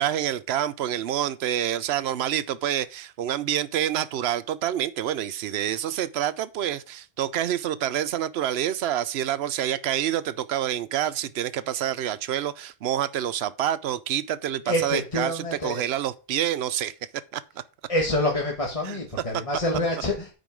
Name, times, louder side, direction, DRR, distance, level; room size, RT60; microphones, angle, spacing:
voice 1, 0.0-16.9 17.3-17.4 18.8-19.0, right 11 dB, 90° right, 0.9 m, -27 dB
voice 2, 14.6-15.9 17.9-20.3, left 1 dB, 35° left, 1.4 m, -27 dB
9.0 x 5.4 x 4.7 m
omnidirectional pair, 1.0 m